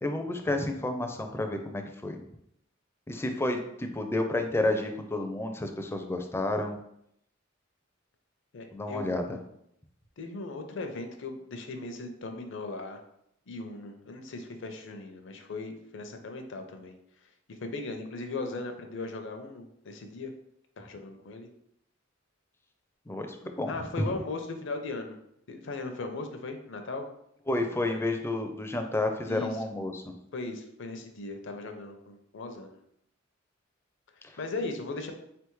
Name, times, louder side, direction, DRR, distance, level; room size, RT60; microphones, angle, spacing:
voice 1, 0.0-2.2 3.1-6.8 8.7-9.4 23.1-24.1 27.5-30.0 34.2-34.4, left 2 dB, 10° left, 5 dB, 0.4 m, -30 dB
voice 2, 8.5-9.1 10.2-13.0 13.5-17.0 17.5-20.3 20.8-21.5 23.7-25.2 25.5-27.1 29.3-29.6 30.3-32.8 34.4-35.1, left 3 dB, 65° left, 5 dB, 0.6 m, -38 dB
3.9 x 3.4 x 3.1 m, 0.75 s
head